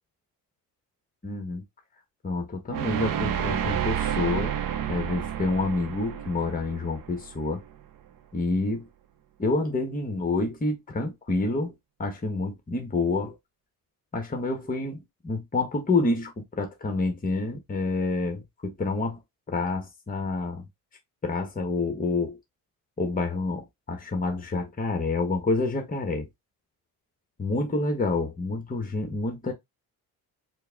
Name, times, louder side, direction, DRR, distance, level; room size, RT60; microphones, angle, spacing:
voice 1, 1.2-1.6 2.2-4.6 4.9-7.6 8.3-8.9 9.4-11.7 12.0-13.4 14.1-16.3 16.6-19.2 19.5-20.6 21.2-22.4 23.0-26.3 27.4-29.5, left 3 dB, 20° left, 1.2 m, -28 dB
sound 1, 2.7-7.8, right 9 dB, 60° right, 0.8 m, -30 dB
4.5 x 2.2 x 3.5 m
cardioid pair, 90°, 38 cm